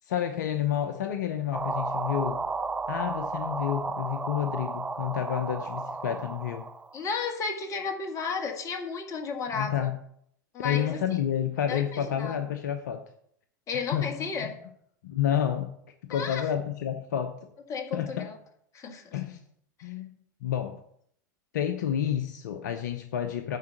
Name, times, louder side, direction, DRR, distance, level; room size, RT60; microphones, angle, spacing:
voice 1, 0.1-2.4 2.9-6.7 9.5-9.9 10.6-13.0 13.7-14.5 15.0-15.7 16.1-17.4 17.9-18.3 19.1-19.4 19.8-20.1 20.4-20.8 21.5-23.6, left 10 dB, 65° left, 0.9 m, -30 dB
sound 1, 1.5-7.0, right 3 dB, 10° right, 0.5 m, -33 dB
voice 2, 6.9-9.9 10.5-11.2 11.7-12.4 13.7-14.6 16.1-16.5 17.7-18.4 18.7-19.1 19.8-19.9, left 5 dB, 30° left, 1.9 m, -33 dB
9.5 x 4.9 x 7.9 m
figure-of-eight pair, 90°, 10 cm